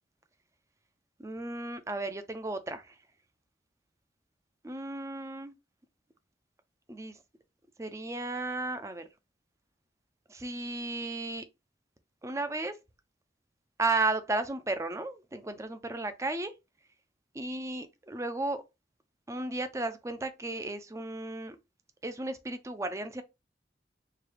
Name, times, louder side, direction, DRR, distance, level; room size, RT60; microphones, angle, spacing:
voice 1, 1.2-2.9 4.6-5.5 6.9-7.2 7.8-9.1 10.3-11.4 12.2-12.8 13.8-16.5 17.3-18.6 19.3-21.6 22.0-23.2, right 2 dB, 15° right, 0.4 m, -34 dB
4.7 x 2.3 x 3.2 m
head